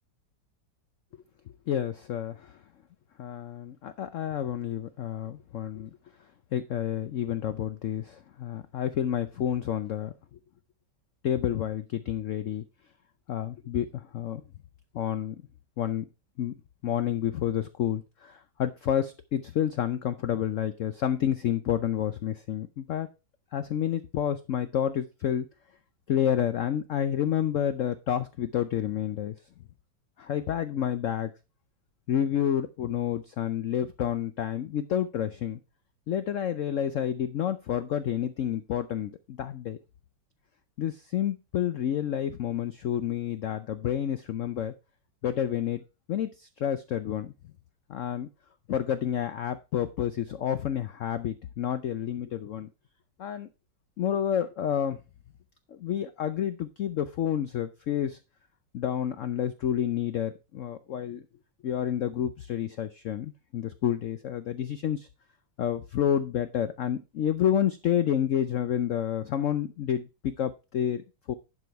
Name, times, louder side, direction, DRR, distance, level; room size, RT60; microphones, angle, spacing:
voice 1, 1.7-2.6 3.2-5.9 6.5-10.1 11.2-12.6 13.3-14.4 14.9-15.4 15.8-16.0 16.4-16.5 16.8-23.1 23.5-25.5 26.1-29.3 30.2-31.3 32.1-35.6 36.1-39.8 40.8-44.7 45.2-45.8 46.1-47.3 47.9-48.3 48.7-52.7 53.2-53.5 54.0-55.0 55.7-58.2 58.7-61.2 61.6-65.1 65.6-71.3, left 10 dB, 85° left, 11 dB, 0.6 m, -29 dB
11.0 x 4.9 x 4.6 m, 0.29 s
omnidirectional pair, 2.1 m